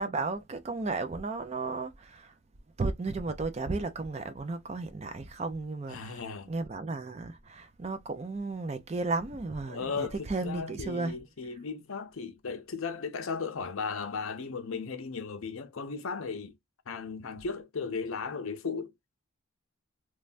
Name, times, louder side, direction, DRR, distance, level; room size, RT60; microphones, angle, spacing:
voice 1, 0.0-2.3 2.8-11.2, right 3 dB, 30° right, 0.4 m, -34 dB
voice 2, 5.9-6.5 9.7-16.6 16.9-18.9, left 5 dB, 70° left, 0.6 m, -36 dB
3.2 x 2.2 x 2.4 m
head